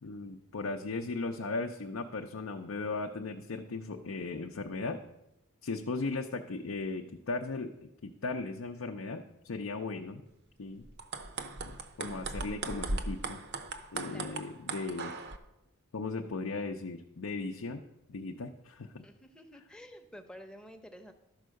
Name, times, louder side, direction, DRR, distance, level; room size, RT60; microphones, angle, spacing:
voice 1, 0.0-5.0 5.6-10.2 10.6-10.8 11.6-11.7 12.0-13.4 13.9-15.1 15.9-17.8 18.1-19.1, left 3 dB, 60° left, 3 dB, 0.5 m, -37 dB
sound 1, 10.9-15.4, right 3 dB, 50° right, 0.7 m, -38 dB
voice 2, 14.1-14.4 19.0-21.1, equal, 5° left, 4 dB, 0.7 m, -50 dB
12.0 x 4.6 x 6.4 m, 0.90 s
head